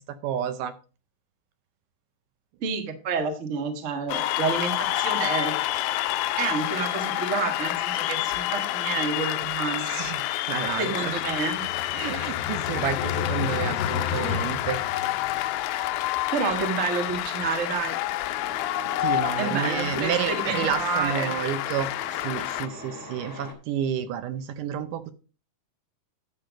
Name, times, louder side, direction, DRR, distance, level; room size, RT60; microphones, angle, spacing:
voice 1, 0.2-0.7 9.9-10.2 10.5-11.2 11.9-14.8 19.0-21.9 22.2-25.1, right 9 dB, 75° right, 11 dB, 2.1 m, -30 dB
voice 2, 2.6-5.5 6.4-10.0 10.8-11.6 16.3-18.0 19.4-21.3, right 5 dB, 45° right, 5 dB, 0.9 m, -29 dB
Cheering / Applause, 4.1-22.7, left 15 dB, 85° left, 1.7 m, -28 dB
sound 1, 11.2-15.6, left 7 dB, 70° left, 1.5 m, -32 dB
Truck, 18.2-23.5, left 1 dB, 20° left, 1.9 m, -42 dB
10.0 x 6.8 x 5.0 m, 0.36 s
omnidirectional pair, 4.1 m